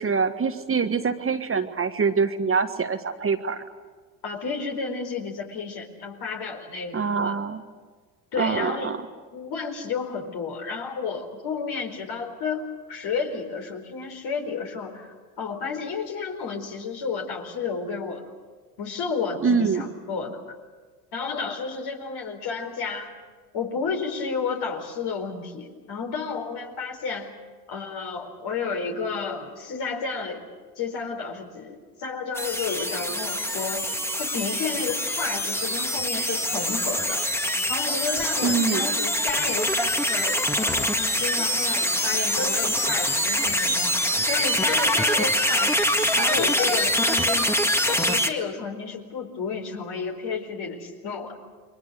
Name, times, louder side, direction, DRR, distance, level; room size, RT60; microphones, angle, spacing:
voice 1, 0.0-3.6 6.9-7.6 8.4-9.0 19.4-19.8 38.4-38.9, right 5 dB, 25° right, 7 dB, 1.5 m, -24 dB
voice 2, 4.2-7.4 8.3-8.9 9.3-18.3 18.8-20.5 21.1-23.1 23.5-27.3 27.7-33.9 34.2-37.3 37.7-43.9 44.3-45.8 46.1-47.6 47.9-51.4, left 5 dB, 55° left, 3 dB, 4.6 m, -31 dB
sound 1, 32.3-48.3, equal, 5° left, 1.9 m, -24 dB
29.0 x 22.5 x 6.7 m, 1.5 s
hypercardioid pair, 65°, 47 cm